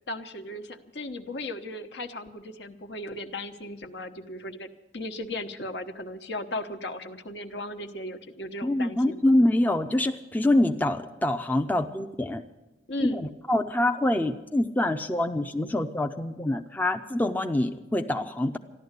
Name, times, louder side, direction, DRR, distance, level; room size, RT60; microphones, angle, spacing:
voice 1, 0.1-9.2 12.9-13.3, left 1 dB, 70° left, 7 dB, 1.1 m, -36 dB
voice 2, 8.6-12.4 13.0-18.6, left 1 dB, 10° left, 5 dB, 0.5 m, -25 dB
14.0 x 11.5 x 8.1 m, 1.1 s
head